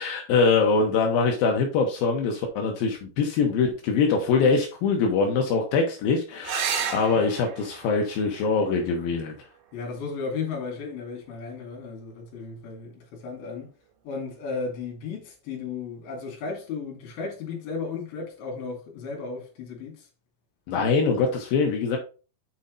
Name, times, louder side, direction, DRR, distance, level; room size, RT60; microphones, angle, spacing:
voice 1, 0.0-9.3 20.7-22.0, left 4 dB, 85° left, 2.0 m, -23 dB
sound 1, 6.4-11.5 13.4-14.0 17.4-17.6 17.9-18.0, right 7 dB, 90° right, 3.9 m, -35 dB
voice 2, 9.7-13.7 14.0-20.1, left 4 dB, 55° left, 3.8 m, -34 dB
7.8 x 4.3 x 3.8 m
omnidirectional pair, 5.6 m